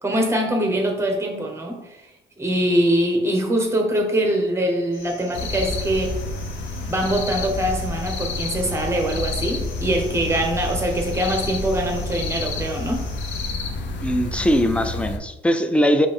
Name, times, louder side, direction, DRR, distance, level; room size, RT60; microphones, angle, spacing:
voice 1, 0.0-1.9 2.4-6.2 6.9-13.1, right 1 dB, 15° right, 2 dB, 1.0 m, -23 dB
sound 1, 4.9-13.5, left 3 dB, 80° left, 1.0 m, -44 dB
sound 2, 5.3-15.2, left 2 dB, 65° left, 0.6 m, -29 dB
voice 2, 14.0-16.1, equal, 5° left, 8 dB, 0.4 m, -20 dB
5.1 x 2.6 x 3.6 m, 1.0 s
cardioid pair, 90°, 20 cm